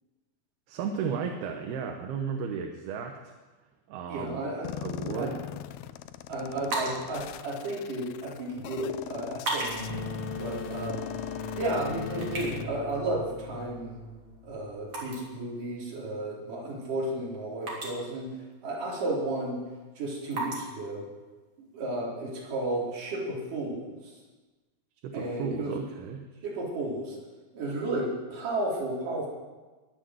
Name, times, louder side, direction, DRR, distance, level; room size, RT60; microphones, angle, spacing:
voice 1, 0.7-3.3 3.9-4.4 4.7-5.4 25.0-26.2, right 6 dB, 80° right, 4 dB, 3.0 m, -34 dB
voice 2, 4.1-4.7 5.1-5.3 6.3-9.7 10.4-11.0 11.5-14.0 14.4-18.3 18.6-19.6 20.0-21.1 21.7-23.9 25.1-25.7 26.4-27.2 27.5-29.3, right 1 dB, 55° right, -5 dB, 5.5 m, -33 dB
sound 1, 4.6-12.6, left 13 dB, 85° left, 2.6 m, -41 dB
sound 2, 6.5-21.9, right 2 dB, 40° right, 4.1 m, -41 dB
sound 3, 9.6-15.0, left 3 dB, 25° left, 1.4 m, -39 dB
21.5 x 7.6 x 7.9 m, 1.2 s
omnidirectional pair, 4.5 m